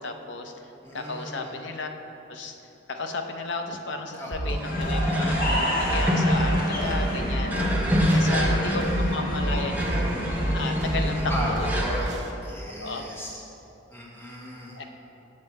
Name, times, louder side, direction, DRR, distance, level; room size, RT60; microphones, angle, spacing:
voice 1, 0.0-1.9 2.3-2.6 2.9-5.4 5.8-7.6 8.0-10.1 10.5-11.2 11.5-11.8 12.8-13.0 14.7-14.8, left 3 dB, 75° left, 5 dB, 0.7 m, -34 dB
voice 2, 0.8-1.5 4.2-4.6 8.1-9.1 11.1-13.3 13.9-14.8, equal, 15° left, -5 dB, 1.3 m, -36 dB
sound 1, 4.3-12.3, right 1 dB, 80° right, 1.0 m, -29 dB
sound 2, 4.5-12.1, equal, 10° right, 0.7 m, -28 dB
sound 3, 4.6-11.5, equal, 50° left, 1.4 m, -29 dB
7.4 x 6.5 x 4.6 m, 3.0 s
head